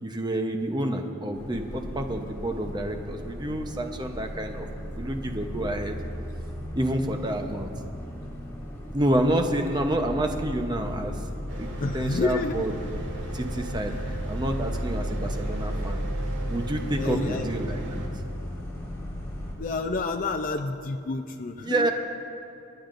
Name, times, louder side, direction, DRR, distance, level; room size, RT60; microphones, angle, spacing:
voice 1, 0.0-6.0 6.7-7.7 8.9-11.2 11.6-11.7 11.9-12.7 13.3-16.0 16.5-18.0 21.6-21.9, right 1 dB, 25° right, 4 dB, 0.9 m, -28 dB
sound 1, 1.3-19.5, equal, 15° left, 2.9 m, -35 dB
Mechanical fan, 11.5-18.1, right 1 dB, 70° right, 1.9 m, -40 dB
voice 2, 11.8-12.5 13.9-14.0 17.0-17.5 19.6-21.9, left 3 dB, 45° left, 5 dB, 0.5 m, -29 dB
28.5 x 10.0 x 2.6 m, 2.8 s
head